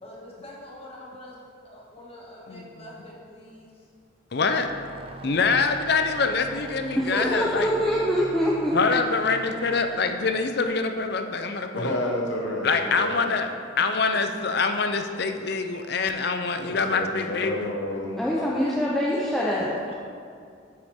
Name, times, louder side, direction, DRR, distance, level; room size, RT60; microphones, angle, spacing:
voice 1, 0.0-1.4 1.6-3.9 12.7-13.1 13.3-13.8 18.3-19.9, left 1 dB, 30° left, -4 dB, 1.6 m, -44 dB
voice 2, 4.3-4.7 5.2-7.7 8.7-12.0 12.6-13.5 13.8-17.7, left 4 dB, 55° left, 6 dB, 0.5 m, -25 dB
sound 1, 4.4-11.8, right 3 dB, 30° right, 0.4 m, -42 dB
voice 3, 7.0-8.8 18.2-19.7, equal, ahead, -7 dB, 0.7 m, -24 dB
voice 4, 11.7-12.7 12.9-13.1 16.6-18.1, left 1 dB, 70° left, -2 dB, 1.4 m, -30 dB
8.1 x 7.9 x 3.6 m, 2.3 s
head